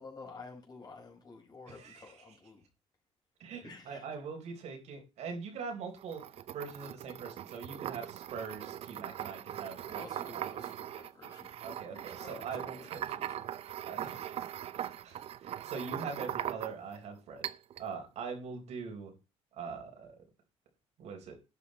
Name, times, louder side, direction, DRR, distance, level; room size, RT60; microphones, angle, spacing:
voice 1, 0.0-2.6 3.6-4.1 9.8-11.5 11.8-13.5, left 4 dB, 35° left, 5.0 m, -51 dB
voice 2, 1.7-2.3 3.4-6.2 6.5-10.4 11.6-13.1 13.8-14.4 14.8-17.5 17.8-19.1 19.6-20.2 21.0-21.4, right 5 dB, 75° right, 4.1 m, -42 dB
sound 1, 6.0-17.0 17.4-17.9, right 11 dB, 60° right, 0.7 m, -40 dB
12.0 x 9.5 x 4.3 m
cardioid pair, 125°, 12 cm